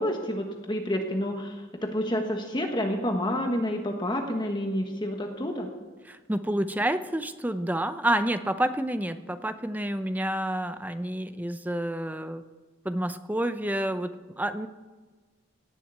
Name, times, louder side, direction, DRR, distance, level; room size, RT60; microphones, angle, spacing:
voice 1, 0.0-5.7, equal, 20° left, 3 dB, 1.4 m, -29 dB
voice 2, 6.0-12.4 12.8-14.7, right 1 dB, 10° right, 10 dB, 0.5 m, -29 dB
17.5 x 7.5 x 9.3 m, 1.4 s
head